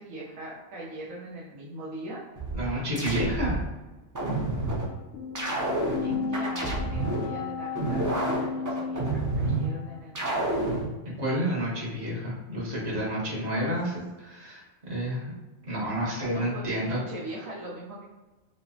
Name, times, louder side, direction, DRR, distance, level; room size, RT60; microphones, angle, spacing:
voice 1, 0.0-2.2 6.0-9.0 9.4-10.8 13.1-13.7 16.3-18.0, right 1 dB, 85° right, -7 dB, 1.2 m, -41 dB
sound 1, 2.4-3.7 4.2-4.9 5.4-7.3 7.8-9.7 10.2-10.9, right 2 dB, 25° right, 0.4 m, -29 dB
voice 2, 2.5-3.6 11.2-15.3 15.7-17.0, equal, 55° right, -5 dB, 1.4 m, -30 dB
sound 2, 4.6-10.0, left 5 dB, 75° left, 0.9 m, -35 dB
5.0 x 2.0 x 2.7 m, 1.2 s
omnidirectional pair, 1.3 m